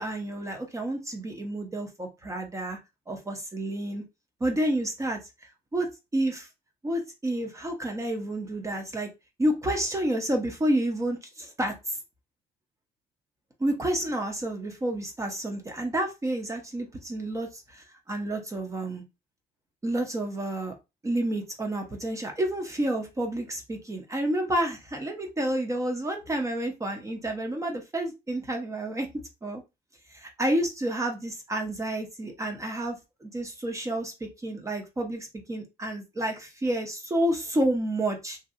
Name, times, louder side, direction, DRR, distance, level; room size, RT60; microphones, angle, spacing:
voice 1, 0.0-2.8 3.1-4.0 4.4-5.2 5.7-5.9 6.1-6.5 6.8-9.1 9.4-12.0 13.6-19.0 19.8-20.7 21.0-29.1 29.4-29.6 30.1-33.0 33.2-38.4, right 1 dB, 20° right, 3 dB, 0.8 m, -30 dB
2.9 x 2.8 x 2.5 m, 0.24 s
cardioid pair, 110°, 17 cm